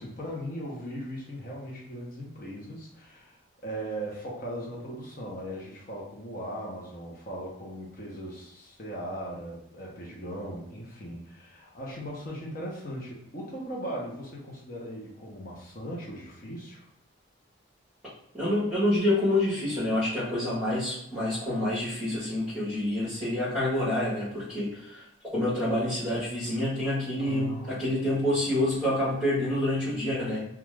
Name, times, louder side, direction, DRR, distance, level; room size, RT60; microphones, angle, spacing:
voice 1, 0.0-16.9 27.2-28.2, equal, 45° left, -3 dB, 0.8 m, -38 dB
voice 2, 18.3-25.0 25.3-30.4, left 1 dB, 5° right, -12 dB, 1.0 m, -27 dB
2.5 x 2.3 x 3.1 m, 0.78 s
head